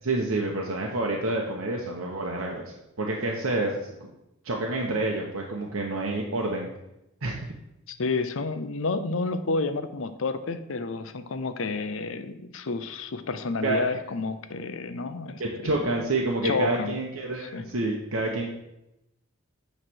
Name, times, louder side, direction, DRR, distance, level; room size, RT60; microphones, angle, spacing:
voice 1, 0.0-2.6 3.0-4.1 4.4-6.7 7.2-7.3 13.6-13.8 15.4-18.5, right 2 dB, 75° right, 0 dB, 0.9 m, -28 dB
voice 2, 7.9-15.8 16.4-16.9 17.4-17.7, left 3 dB, 65° left, 10 dB, 0.6 m, -30 dB
8.9 x 3.2 x 6.2 m, 0.88 s
head